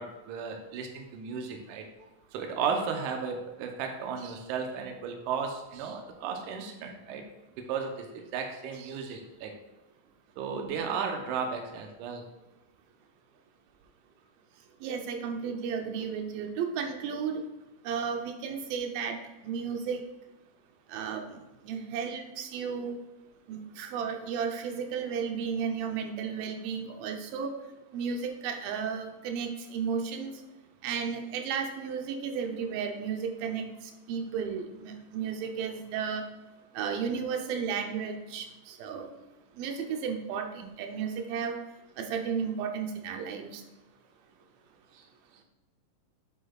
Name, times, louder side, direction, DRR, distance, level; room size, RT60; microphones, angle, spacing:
voice 1, 0.0-1.9 2.3-7.2 7.6-9.5 10.4-12.3 44.9-45.0, right 6 dB, 75° right, 4 dB, 2.2 m, -34 dB
voice 2, 14.8-17.4 17.8-19.2 19.4-20.0 20.9-23.0 23.5-27.5 27.9-30.3 30.8-36.3 36.7-39.1 39.6-41.6 42.0-43.6, right 6 dB, 90° right, 4 dB, 2.6 m, -33 dB
9.0 x 7.3 x 2.4 m, 1.1 s
omnidirectional pair, 4.0 m